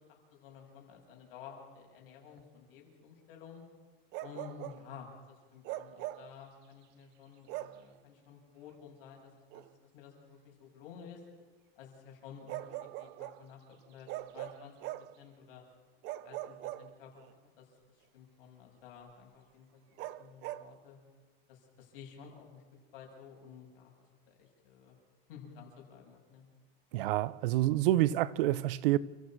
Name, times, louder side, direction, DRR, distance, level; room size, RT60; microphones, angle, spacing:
voice 1, 0.1-3.6 4.2-9.6 9.9-11.2 11.8-13.6 13.9-14.1 14.3-14.7 15.2-15.6 16.2-17.1 17.6-17.7 18.0-21.0 21.5-22.6 22.9-23.9 24.3-25.0 25.3-26.4, left 7 dB, 65° left, 7.3 m, -52 dB
Bark, 4.1-4.9 5.6-6.3 7.5-7.9 9.5-9.7 12.5-13.4 14.1-15.2 16.0-17.3 20.0-20.7, right 15 dB, 35° right, 0.7 m, -41 dB
voice 2, 26.9-29.0, right 15 dB, 65° right, 1.0 m, -28 dB
29.5 x 15.0 x 6.2 m
supercardioid pair, 155°, 29 cm